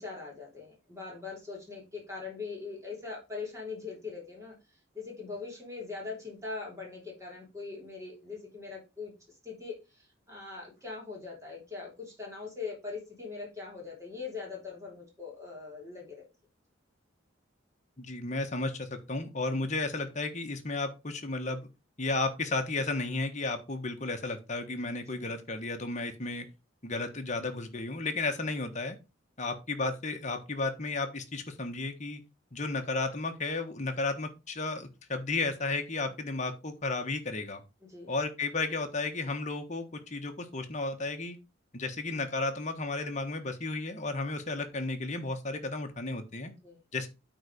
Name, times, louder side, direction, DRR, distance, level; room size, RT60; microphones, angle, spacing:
voice 1, 0.0-4.6 4.9-9.1 9.4-16.3 25.1-25.3 37.8-38.1 46.5-46.8, left 4 dB, 15° right, -2 dB, 3.5 m, -41 dB
voice 2, 18.0-21.7 22.0-26.4 26.8-29.0 29.4-32.2 32.5-37.6 38.1-41.4 41.7-46.5 46.9-47.1, left 3 dB, 35° left, 6 dB, 1.3 m, -33 dB
8.9 x 4.0 x 5.2 m, 0.28 s
head